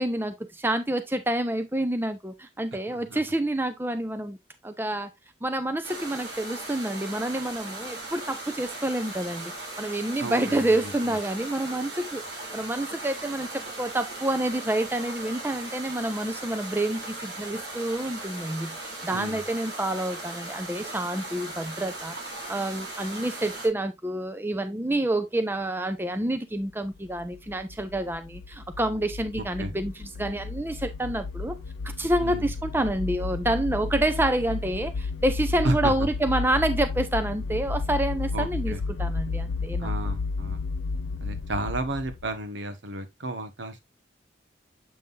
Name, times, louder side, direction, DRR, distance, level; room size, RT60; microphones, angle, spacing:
voice 1, 0.0-4.4 4.6-5.1 5.4-12.2 12.5-22.1 22.5-31.6 32.0-40.0, right 1 dB, 10° right, 0.6 m, -28 dB
voice 2, 2.9-3.2 10.2-11.2 19.1-19.4 29.4-29.7 32.2-32.5 35.6-36.1 38.3-38.8 39.8-40.7 41.2-43.8, right 2 dB, 80° right, 1.3 m, -33 dB
sound 1, 5.8-23.7, right 2 dB, 60° right, 3.0 m, -38 dB
sound 2, 27.0-42.4, left 3 dB, 85° left, 0.5 m, -32 dB
7.8 x 5.7 x 2.5 m
head